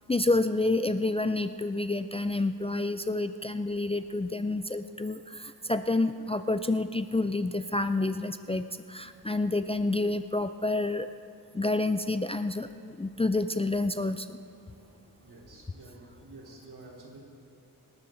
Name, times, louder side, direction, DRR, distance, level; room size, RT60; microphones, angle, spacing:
voice 1, 0.1-8.6 8.9-11.1 11.5-14.3, left 2 dB, 15° left, 10 dB, 0.3 m, -28 dB
voice 2, 15.2-17.2, right 2 dB, 85° right, -3 dB, 3.7 m, -49 dB
26.0 x 12.5 x 3.9 m, 2.7 s
wide cardioid pair, 135°, 38 cm